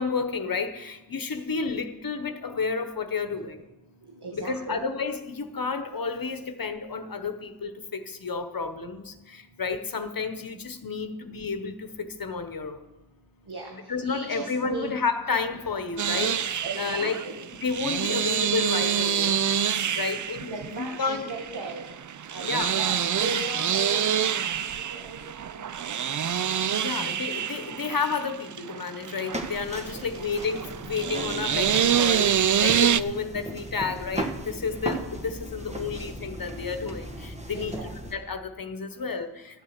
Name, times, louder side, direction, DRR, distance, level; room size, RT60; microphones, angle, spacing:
voice 1, 0.0-3.6 4.3-12.8 13.9-17.2 17.6-19.3 20.0-21.3 22.4-22.8 26.7-37.7 38.1-39.6, left 5 dB, 60° left, 8 dB, 1.0 m, -31 dB
voice 2, 4.0-4.8 13.5-14.9 16.6-17.5 20.5-21.9 22.3-27.0 29.9-30.3 37.5-37.9, right 2 dB, 80° right, -1 dB, 1.9 m, -38 dB
sound 1, 16.0-33.0, right 9 dB, 50° right, 0.4 m, -27 dB
sound 2, 29.3-38.1, right 1 dB, 15° right, 1.3 m, -37 dB
13.0 x 7.3 x 8.0 m, 1.0 s
wide cardioid pair, 95°, 39 cm